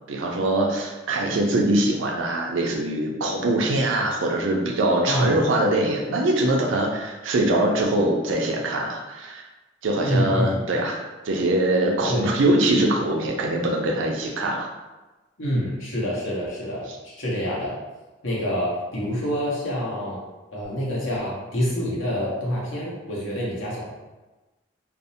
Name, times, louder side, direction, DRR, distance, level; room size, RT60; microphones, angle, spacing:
voice 1, 0.1-9.4 9.8-11.0 11.2-14.7, right 1 dB, 80° right, 1 dB, 0.4 m, -23 dB
voice 2, 10.0-10.6 12.1-12.3 15.4-17.8 18.2-20.2 20.5-23.9, equal, 90° left, -5 dB, 0.9 m, -26 dB
2.5 x 2.0 x 2.7 m, 1.1 s
head